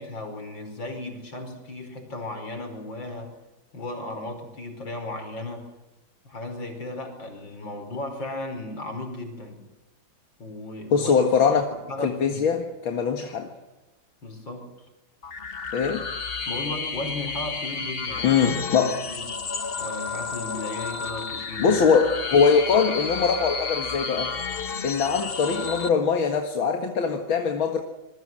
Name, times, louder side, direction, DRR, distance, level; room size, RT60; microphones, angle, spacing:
voice 1, 0.0-3.3 3.7-5.7 6.3-9.6 10.4-11.1 11.9-12.4 14.2-14.7 16.5-18.4 18.8-19.2 19.8-21.7, left 2 dB, 70° left, 5.9 m, -35 dB
voice 2, 10.9-11.7 12.0-13.5 15.7-16.0 18.2-19.0 21.6-24.4 24.8-27.8, left 6 dB, 90° left, 2.5 m, -22 dB
sound 1, 15.2-25.9, left 5 dB, 35° left, 1.3 m, -32 dB
26.5 x 21.5 x 7.6 m
omnidirectional pair, 2.1 m